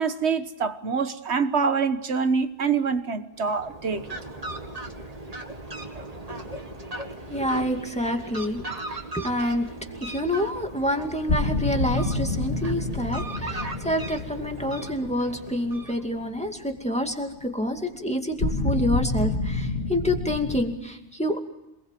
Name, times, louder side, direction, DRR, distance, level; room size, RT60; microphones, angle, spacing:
voice 1, 0.0-4.1, right 5 dB, 65° right, 1.6 m, -25 dB
Fowl, 3.4-16.4, right 2 dB, 30° right, 2.1 m, -38 dB
voice 2, 7.3-8.6 9.1-9.7 10.0-21.4, equal, 5° left, 2.4 m, -27 dB
sound 1, 9.5-9.6 9.9-10.0 11.3-16.3 18.4-20.6, left 2 dB, 85° left, 2.5 m, -28 dB
27.0 x 20.0 x 7.6 m
omnidirectional pair, 1.2 m